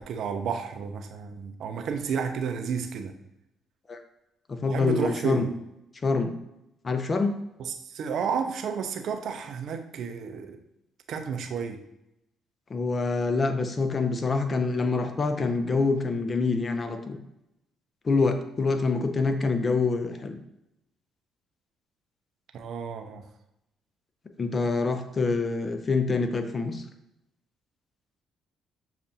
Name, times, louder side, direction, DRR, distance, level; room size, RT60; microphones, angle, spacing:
voice 1, 0.0-3.2 4.7-5.5 7.6-10.6 11.1-11.8 22.5-23.2, right 6 dB, 65° right, 6 dB, 0.5 m, -31 dB
voice 2, 4.5-5.5 6.0-6.3 6.8-7.4 12.7-17.2 18.0-20.4 24.4-26.8, left 3 dB, 40° left, 7 dB, 0.6 m, -26 dB
6.7 x 2.4 x 2.7 m, 0.87 s
hypercardioid pair, 55°, 0 cm